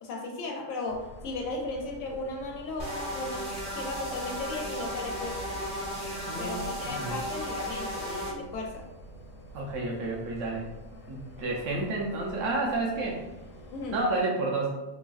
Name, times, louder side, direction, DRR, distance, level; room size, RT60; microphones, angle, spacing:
voice 1, 0.0-3.5 3.7-5.6 6.4-8.9 13.7-14.0, left 2 dB, 75° left, 1 dB, 1.0 m, -36 dB
sound 1, 0.9-14.2, equal, 60° left, 0.6 m, -47 dB
sound 2, 2.8-8.3, equal, 40° right, 0.6 m, -35 dB
voice 2, 6.3-7.2 9.5-10.7 11.1-13.2 13.9-14.7, right 2 dB, 70° right, -2 dB, 1.0 m, -30 dB
3.2 x 2.6 x 2.3 m, 1.0 s
omnidirectional pair, 1.4 m